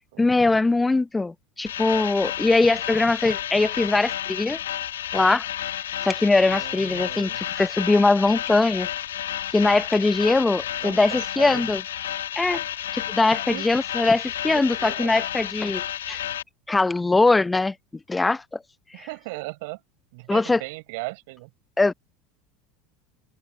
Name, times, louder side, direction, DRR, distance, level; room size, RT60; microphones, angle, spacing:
voice 1, 0.2-4.6 5.1-5.5 6.0-8.9 9.5-11.8 12.4-12.6 12.9-16.2 16.7-17.7 18.1-18.6 20.3-20.6 21.8-21.9, left 3 dB, 15° left, 0.7 m, -21 dB
sound 1, 1.7-16.4, left 11 dB, 85° left, 1.5 m, -31 dB
voice 2, 6.4-7.4 10.8-11.7 13.5-13.7 14.5-15.2 18.9-19.8 20.1-21.5, right 26 dB, 70° right, 5.4 m, -37 dB
hypercardioid pair, 85°, 0 cm